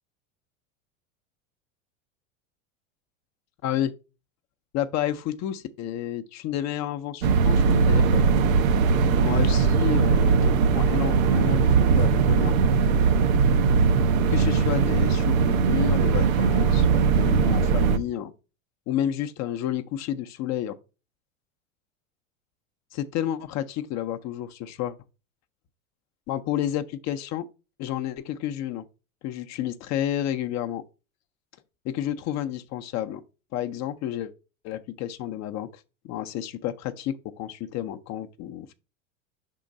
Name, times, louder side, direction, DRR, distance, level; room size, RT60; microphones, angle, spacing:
voice 1, 3.6-3.9 4.7-8.2 9.2-12.5 14.3-18.3 18.9-20.7 22.9-24.9 26.3-27.4 27.8-28.8 29.2-30.8 31.8-33.2 33.5-34.3 34.6-38.7, left 11 dB, 45° left, 0.6 m, -30 dB
sound 1, 7.2-18.0, right 5 dB, 85° right, 0.7 m, -20 dB
5.0 x 3.8 x 5.1 m
hypercardioid pair, 100°, 40 cm